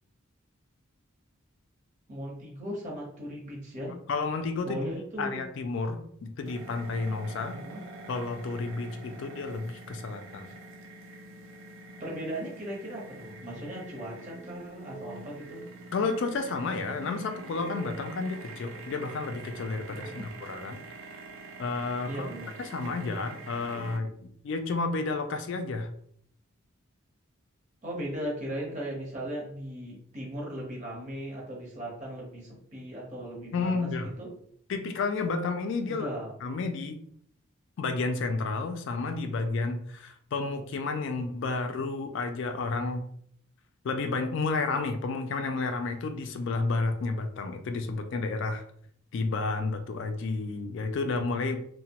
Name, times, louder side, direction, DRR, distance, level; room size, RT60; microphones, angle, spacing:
voice 1, 2.1-3.9 4.6-5.4 7.5-7.8 11.9-15.6 19.8-20.3 22.0-22.5 27.8-34.3 35.8-36.3, equal, 35° right, -3 dB, 0.9 m, -38 dB
voice 2, 4.1-4.9 5.2-7.6 8.1-10.5 15.9-20.8 21.6-22.3 22.6-25.9 33.5-34.1 34.7-36.1 36.4-37.0 37.8-43.1 43.8-48.6 49.1-51.6, left 3 dB, 60° left, 7 dB, 0.3 m, -31 dB
sound 1, 6.5-24.0, right 2 dB, 70° right, 0.5 m, -45 dB
2.8 x 2.1 x 2.8 m, 0.65 s
head